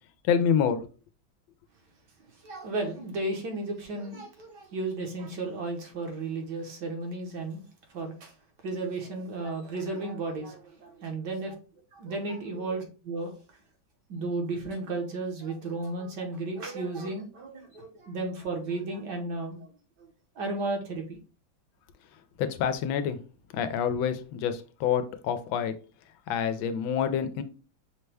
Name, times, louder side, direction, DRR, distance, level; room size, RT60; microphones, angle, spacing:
voice 1, 0.3-0.8 22.4-23.2 23.5-25.7 26.3-27.4, left 8 dB, 85° left, 1.3 m, -27 dB
voice 2, 2.2-8.3 8.6-11.5 11.9-13.6 14.1-19.7 20.0-20.1 20.3-21.2, right 2 dB, 65° right, 1.5 m, -34 dB
5.8 x 2.2 x 3.3 m
omnidirectional pair, 2.1 m